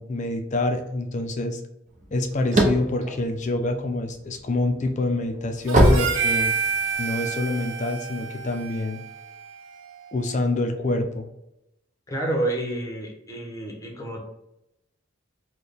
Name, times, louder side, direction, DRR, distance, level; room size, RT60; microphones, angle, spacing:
voice 1, 0.0-1.6 2.1-6.5 7.0-9.0 10.1-11.3, left 2 dB, 40° left, 4 dB, 0.5 m, -26 dB
sound 1, 2.0-4.2 4.7-6.9, right 1 dB, 40° right, 0.7 m, -20 dB
Harmonica, 5.7-10.2, right 6 dB, 90° right, 0.6 m, -29 dB
voice 2, 12.1-14.2, right 1 dB, 15° left, 0 dB, 0.9 m, -29 dB
4.3 x 2.3 x 3.3 m, 0.83 s
head